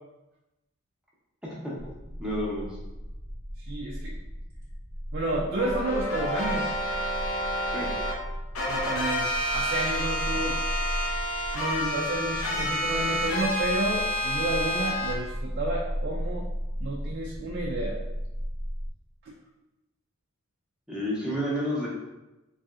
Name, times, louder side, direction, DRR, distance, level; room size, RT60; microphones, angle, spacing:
voice 1, 1.4-1.7 2.2-2.7 7.7-7.9 20.9-21.9, equal, 5° right, -6 dB, 0.6 m, -30 dB
sound 1, 1.8-18.9, equal, 50° left, 0.9 m, -36 dB
voice 2, 3.7-4.2 5.1-6.7 8.7-10.6 11.5-16.5 16.8-18.0 19.2-19.3, right 2 dB, 50° right, -2 dB, 0.3 m, -31 dB
sound 2, 5.6-8.1 8.5-15.1, equal, 75° left, 0.6 m, -29 dB
3.1 x 2.7 x 2.3 m, 1.0 s
head